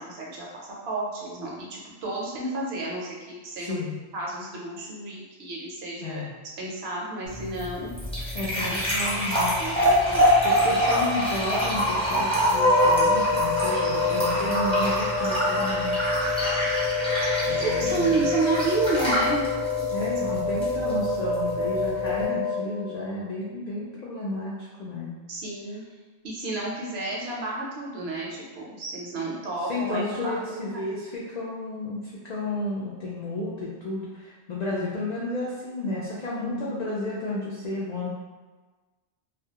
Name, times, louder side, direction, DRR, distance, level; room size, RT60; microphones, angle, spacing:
voice 1, 0.0-3.8 4.1-6.2 6.6-7.9 8.6-8.7 9.6-10.4 17.6-19.5 20.0-20.4 25.3-25.8 26.2-30.8 36.4-36.7, right 3 dB, 65° right, -4 dB, 0.8 m, -31 dB
voice 2, 3.6-4.0 6.0-6.3 8.3-9.6 10.4-16.1 17.5-18.3 19.9-25.2 29.6-38.1, left 2 dB, 70° left, -6 dB, 0.4 m, -32 dB
sound 1, 7.3-22.2, equal, 5° left, 0.6 m, -26 dB
sound 2, 12.5-23.1, left 2 dB, 45° left, 0.8 m, -26 dB
2.3 x 2.2 x 2.8 m, 1.3 s
omnidirectional pair, 1.2 m